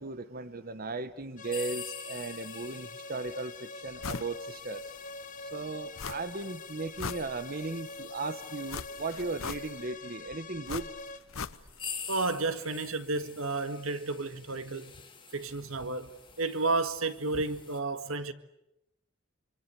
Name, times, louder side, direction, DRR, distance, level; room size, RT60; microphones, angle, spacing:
voice 1, 0.0-4.8 5.4-10.9, right 3 dB, 45° right, 1.2 m, -37 dB
sound 1, 1.4-11.2, left 2 dB, 40° left, 1.7 m, -44 dB
sound 2, 1.4-9.9 10.7-10.8 11.4-17.8, left 6 dB, 25° left, 3.2 m, -47 dB
sound 3, 4.0-4.3 4.7-4.8 6.0-6.5 6.8-7.7 8.7-10.0 10.7-11.9 12.2-12.3, left 5 dB, 85° left, 1.0 m, -39 dB
voice 2, 12.1-14.9 15.3-18.3, right 3 dB, 90° right, 1.8 m, -32 dB
27.0 x 25.5 x 8.3 m
head